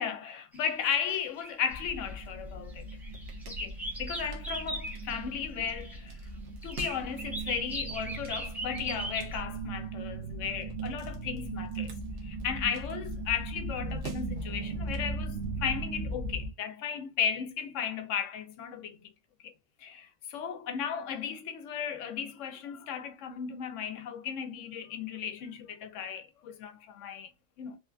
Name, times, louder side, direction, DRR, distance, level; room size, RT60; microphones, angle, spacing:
voice 1, 0.0-2.9 3.5-6.2 6.6-19.1 19.4-19.5 19.8-27.3 27.6-27.8, left 8 dB, 85° left, 0.9 m, -35 dB
sound 1, 0.5-2.1 2.7-6.0 6.6-9.4, right 1 dB, ahead, 0.4 m, -40 dB
sound 2, 1.7-16.5, right 3 dB, 75° right, 1.0 m, -38 dB
3.1 x 2.2 x 2.4 m
omnidirectional pair, 1.2 m